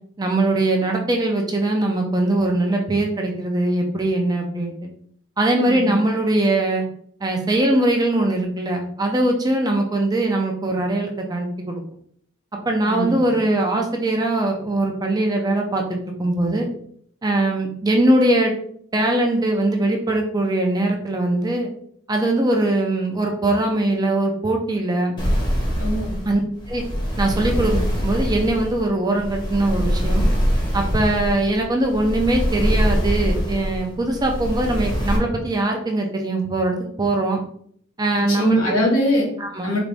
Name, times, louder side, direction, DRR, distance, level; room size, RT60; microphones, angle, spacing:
voice 1, 0.2-4.7 5.4-6.8 7.2-11.8 12.7-16.7 17.2-18.5 18.9-21.7 22.1-25.1 26.3-26.4 26.7-26.8 27.2-30.3 30.7-37.4 38.0-38.6 39.4-39.7, right 2 dB, 20° right, 2 dB, 0.5 m, -21 dB
voice 2, 5.6-6.0 12.8-13.2 25.8-26.1 38.1-39.3 39.6-39.8, equal, 85° left, -3 dB, 1.6 m, -22 dB
sound 1, 25.2-35.2, equal, 25° left, 0.9 m, -23 dB
3.9 x 2.6 x 3.3 m, 0.63 s
head